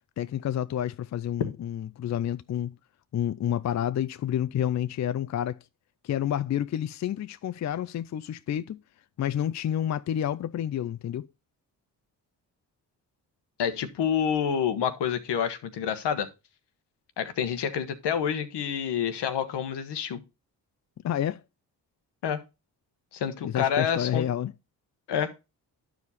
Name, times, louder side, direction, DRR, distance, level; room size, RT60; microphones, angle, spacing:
voice 1, 0.2-2.7 3.1-5.6 6.0-8.8 9.2-11.3 21.0-21.4 23.4-24.5, left 10 dB, 40° left, 0.4 m, -29 dB
voice 2, 13.6-16.3 17.2-20.2 22.2-22.4 23.1-24.3 25.1-25.3, left 8 dB, 75° left, 1.1 m, -28 dB
10.5 x 4.9 x 4.1 m
supercardioid pair, 50°, 42 cm